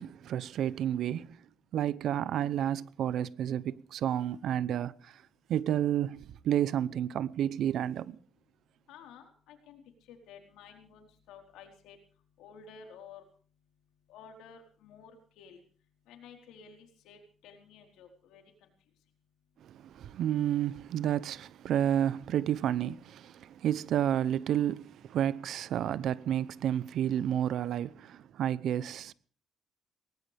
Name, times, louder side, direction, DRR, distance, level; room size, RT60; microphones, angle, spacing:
voice 1, 0.0-1.4 1.7-5.2 5.5-8.2 19.6-29.1, right 10 dB, 65° right, 0.7 m, -31 dB
voice 2, 8.9-9.8 10.1-12.0 12.4-13.2 14.1-15.1 15.4-15.6 16.1-18.4, left 6 dB, 85° left, 4.3 m, -52 dB
19.5 x 19.0 x 3.5 m
cardioid pair, 100°, 0 cm